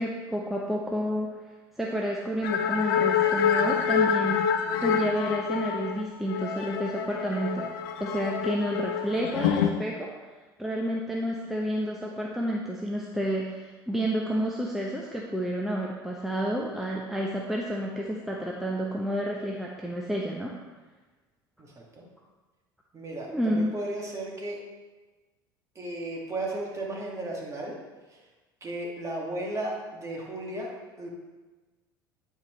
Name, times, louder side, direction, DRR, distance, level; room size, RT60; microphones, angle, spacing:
voice 1, 0.0-1.3 1.8-4.4 4.8-7.7 8.0-10.1 10.6-20.5 23.3-23.7, equal, ahead, -2 dB, 0.8 m, -30 dB
sound 1, 2.4-9.7, left 7 dB, 70° left, 0.5 m, -27 dB
voice 2, 21.6-22.0 22.9-24.6 25.8-27.8 28.1-28.2 28.6-31.1, right 1 dB, 25° right, -2 dB, 2.0 m, -35 dB
9.4 x 4.5 x 3.2 m, 1.3 s
hypercardioid pair, 75°, 12 cm